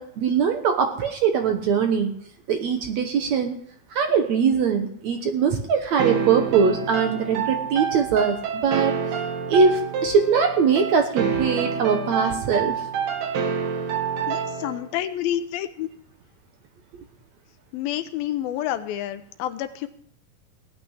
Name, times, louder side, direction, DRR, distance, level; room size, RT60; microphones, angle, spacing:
voice 1, 0.0-2.1 2.5-3.6 3.9-9.0 9.5-12.7, right 6 dB, 65° right, 5 dB, 1.9 m, -21 dB
sound 1, 6.0-14.9, right 6 dB, 85° right, 3.5 m, -27 dB
voice 2, 14.3-15.9 17.7-19.9, left 12 dB, 80° left, 11 dB, 2.6 m, -29 dB
17.0 x 6.0 x 9.9 m, 0.67 s
omnidirectional pair, 4.4 m